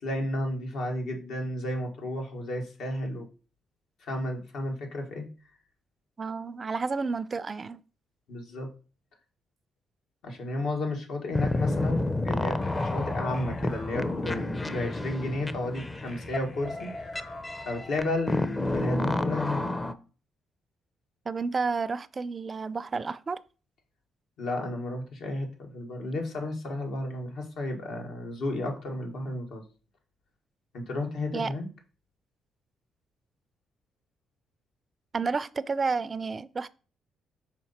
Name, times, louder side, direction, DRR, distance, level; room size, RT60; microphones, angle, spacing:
voice 1, 0.0-3.3 4.0-5.3 8.3-8.7 10.2-17.2 17.7-19.6 24.4-29.6 30.7-31.7, left 1 dB, 75° left, 1.8 m, -32 dB
voice 2, 6.2-7.8 21.3-23.4 31.3-31.5 35.1-36.7, right 4 dB, 35° right, 0.3 m, -31 dB
sound 1, 11.3-19.9, left 2 dB, 15° left, 0.5 m, -30 dB
sound 2, 12.6-15.1 16.1-18.6, left 3 dB, 45° left, 1.1 m, -51 dB
5.9 x 4.4 x 4.2 m
cardioid pair, 90°, 0 cm